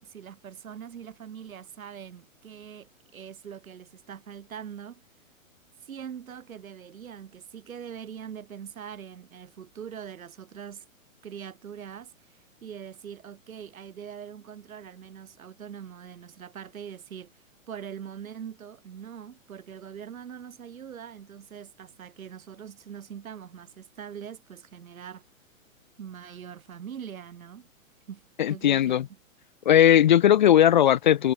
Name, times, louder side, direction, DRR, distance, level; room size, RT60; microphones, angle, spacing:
voice 1, 0.0-5.0 5.8-10.8 11.2-17.3 17.7-25.2 26.0-27.7 28.1-28.2 28.5-29.0, right 8 dB, 85° right, 5.9 m, -42 dB
voice 2, 28.4-29.0 29.7-31.3, left 10 dB, 35° left, 0.8 m, -18 dB
hypercardioid pair, 175°, 41 cm